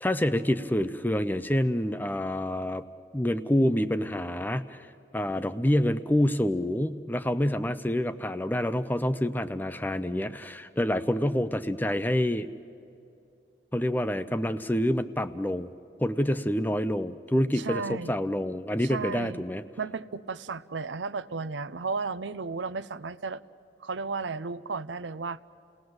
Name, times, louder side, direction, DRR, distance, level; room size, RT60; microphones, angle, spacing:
voice 1, 0.0-2.8 3.1-4.9 5.1-12.5 13.7-15.7 16.0-19.6, left 1 dB, 10° left, 12 dB, 0.6 m, -27 dB
voice 2, 17.5-18.2 18.8-19.4 19.8-23.4 23.8-25.4, right 4 dB, 85° right, 15 dB, 0.6 m, -34 dB
30.0 x 18.5 x 7.9 m, 2.7 s
head